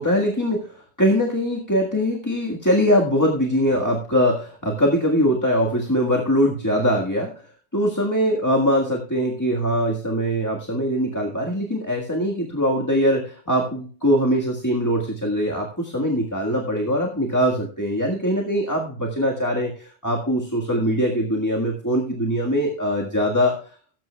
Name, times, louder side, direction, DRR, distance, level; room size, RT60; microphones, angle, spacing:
voice 1, 0.0-7.3 7.7-23.6, equal, 15° left, -1 dB, 1.6 m, -22 dB
18.0 x 9.3 x 2.3 m, 0.42 s
omnidirectional pair, 1.3 m